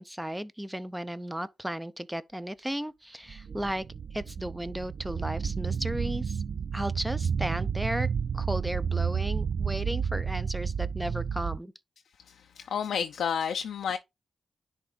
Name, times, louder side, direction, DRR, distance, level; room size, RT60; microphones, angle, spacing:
voice 1, 0.0-3.9 4.1-6.4 6.7-8.1 8.3-11.7, equal, 5° right, 0.7 m, -35 dB
sound 1, 3.3-11.6, right 6 dB, 65° right, 0.3 m, -31 dB
voice 2, 12.3-14.0, left 7 dB, 85° left, 0.5 m, -31 dB
10.0 x 3.5 x 3.9 m
cardioid pair, 60°, 0 cm